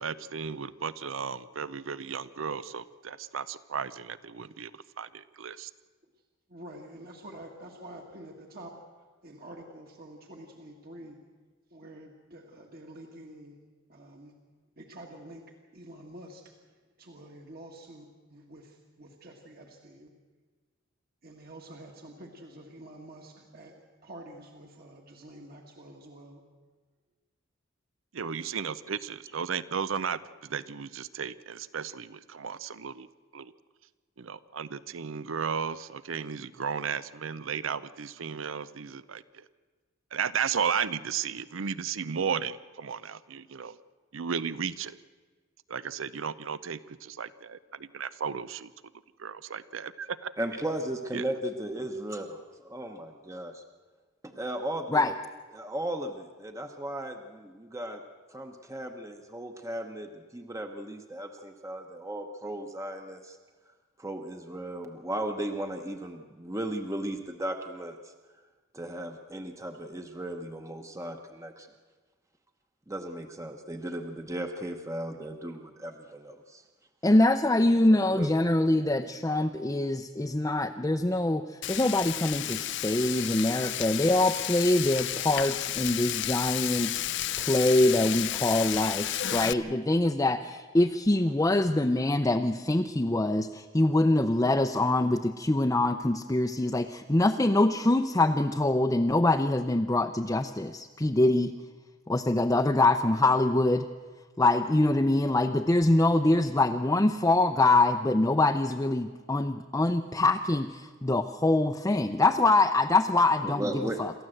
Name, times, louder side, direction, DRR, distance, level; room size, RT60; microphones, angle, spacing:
voice 1, 0.0-5.7 28.1-33.1 33.3-33.5 34.2-39.5 40.1-43.8 44.1-45.0 45.7-48.7 49.2-50.3 51.1-51.3, right 6 dB, 85° right, 16 dB, 0.6 m, -34 dB
voice 2, 6.5-8.8 9.2-11.2 11.7-13.6 13.9-14.3 14.8-15.4 15.7-20.1 21.2-26.4, right 1 dB, 50° right, 1 dB, 1.9 m, -48 dB
voice 3, 50.4-53.6 54.2-55.1 55.5-58.0 58.3-63.4 64.0-68.1 68.7-71.7 72.9-76.6 77.9-78.3 113.4-114.0, right 1 dB, 15° right, 5 dB, 1.0 m, -36 dB
voice 4, 77.0-101.5 102.1-103.8 104.4-114.1, left 2 dB, 15° left, 4 dB, 0.6 m, -24 dB
Frying (food), 81.6-89.5, left 13 dB, 65° left, 0.5 m, -32 dB
28.0 x 14.0 x 7.8 m, 1.4 s
head